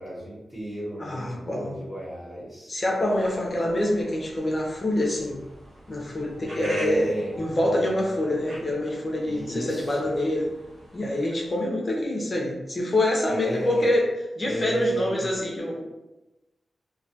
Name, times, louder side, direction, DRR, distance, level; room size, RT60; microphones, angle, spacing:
voice 1, 0.0-2.7 6.5-7.3 9.2-10.0 13.3-14.0 14.4-15.3, right 1 dB, 25° right, -13 dB, 0.8 m, -32 dB
voice 2, 1.0-1.8 2.7-5.4 5.9-10.5 10.9-14.1 14.4-15.8, left 1 dB, 30° left, -2 dB, 0.5 m, -26 dB
sound 1, 3.0-11.6, right 1 dB, 85° right, 0.6 m, -45 dB
sound 2, 6.2-10.8, left 1 dB, 75° left, 0.5 m, -45 dB
2.2 x 2.2 x 2.6 m, 1.0 s
wide cardioid pair, 150°, 0 cm